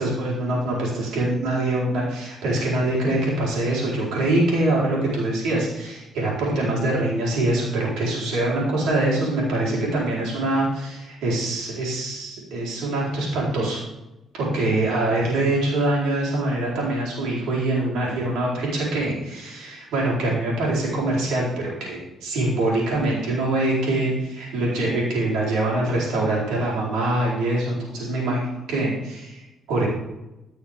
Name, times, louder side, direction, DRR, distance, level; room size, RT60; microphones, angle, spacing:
voice 1, 0.0-13.8 14.3-28.4 28.7-29.9, right 2 dB, 90° right, -5 dB, 4.2 m, -24 dB
15.5 x 6.3 x 3.6 m, 0.98 s
cardioid pair, 90°, 0 cm